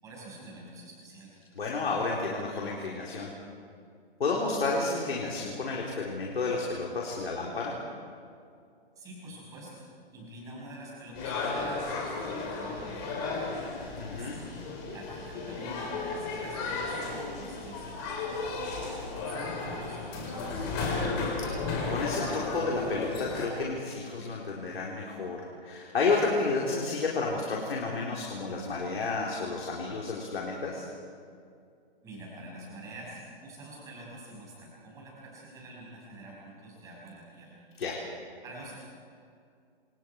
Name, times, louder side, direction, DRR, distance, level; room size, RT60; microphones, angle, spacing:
voice 1, 0.0-1.4 9.0-9.9 10.1-13.8 14.1-14.5 14.9-18.6 19.2-21.1 32.0-37.6 38.4-38.8, right 1 dB, 10° right, -5 dB, 6.1 m, -46 dB
voice 2, 1.6-3.3 4.2-7.8 14.0-14.4 21.4-21.5 21.9-30.9 37.8-38.0, left 3 dB, 70° left, -2 dB, 4.3 m, -31 dB
sound 1, 11.1-23.5, left 3 dB, 20° left, 4.4 m, -34 dB
27.5 x 27.0 x 4.8 m, 2.3 s
hypercardioid pair, 170°, 32 cm